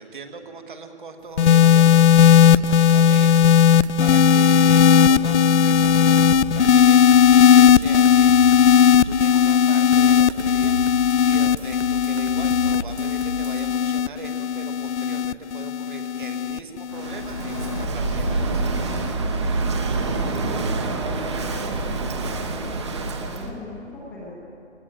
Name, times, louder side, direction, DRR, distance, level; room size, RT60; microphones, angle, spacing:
voice 1, 0.0-18.6, right 4 dB, 45° right, 6 dB, 1.7 m, -40 dB
sound 1, 1.4-17.9 18.8-19.1, left 8 dB, 80° left, 0.6 m, -16 dB
sound 2, 1.6-5.2 5.7-9.4 9.9-13.7, right 3 dB, 70° right, 1.5 m, -35 dB
Walk footsteps / Wind / Waves surf, 16.9-23.5, right 3 dB, 25° right, 1.1 m, -26 dB
voice 2, 19.4-19.8 20.3-24.3, left 1 dB, 5° left, -6 dB, 1.1 m, -39 dB
18.5 x 16.0 x 9.0 m, 2.8 s
hypercardioid pair, 175°, 34 cm